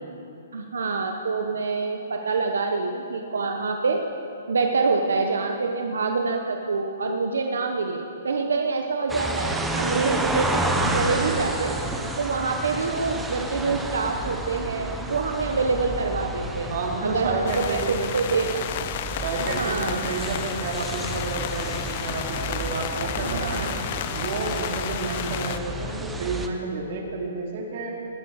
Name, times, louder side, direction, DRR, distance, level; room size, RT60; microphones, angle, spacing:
voice 1, 0.5-4.0 4.5-11.8 12.2-16.7 17.0-18.6 19.4-20.1 23.2-23.9, right 4 dB, 85° right, 3 dB, 1.0 m, -26 dB
sound 1, 9.1-26.5, right 2 dB, 5° right, 0.8 m, -31 dB
voice 2, 16.7-18.1 19.2-23.7 24.1-27.9, right 3 dB, 50° right, 0 dB, 2.7 m, -30 dB
sound 2, 17.5-25.6, left 11 dB, 45° left, 0.5 m, -32 dB
19.5 x 7.2 x 6.5 m, 2.7 s
hypercardioid pair, 155°, 0 cm